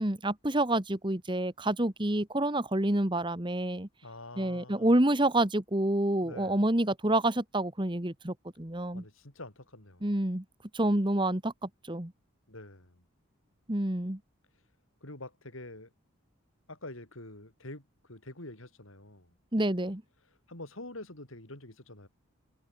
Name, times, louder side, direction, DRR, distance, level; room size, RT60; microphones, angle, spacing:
voice 1, 0.0-3.9 4.4-9.0 10.0-10.4 10.7-12.1 13.7-14.2 19.5-20.0, right 1 dB, 20° right, 1.5 m, -28 dB
voice 2, 4.0-5.0 6.2-6.6 8.9-10.1 12.5-13.0 15.0-15.9 16.7-19.3 20.5-22.1, left 2 dB, 70° left, 4.9 m, -46 dB
head